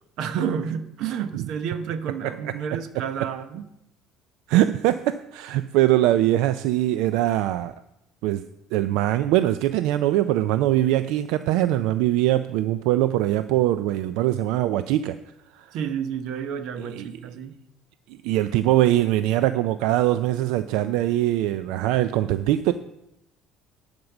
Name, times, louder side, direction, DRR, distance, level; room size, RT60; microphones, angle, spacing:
voice 1, 0.2-3.6 15.7-17.5, right 7 dB, 60° right, 0.8 m, -30 dB
voice 2, 4.5-7.7 8.2-8.4 8.7-15.2 15.5-15.7 16.8-17.1 18.1-22.7, right 14 dB, 75° right, 0.4 m, -22 dB
11.0 x 5.2 x 7.1 m
cardioid pair, 150°, 0 cm